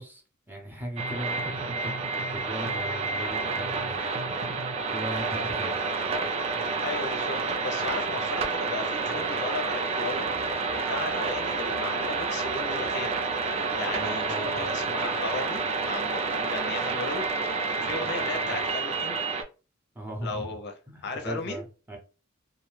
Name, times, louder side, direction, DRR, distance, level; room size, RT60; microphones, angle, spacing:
voice 1, 0.0-4.5 4.9-5.8 10.7-10.9 14.0-14.7 19.9-20.5 20.9-22.0, equal, 10° right, 0.7 m, -39 dB
sound 1, 1.0-19.4, right 4 dB, 30° right, 0.3 m, -29 dB
voice 2, 6.8-17.3 17.8-19.2 20.2-20.7 21.0-21.6, left 3 dB, 55° left, 0.4 m, -36 dB
2.3 x 2.2 x 3.1 m
head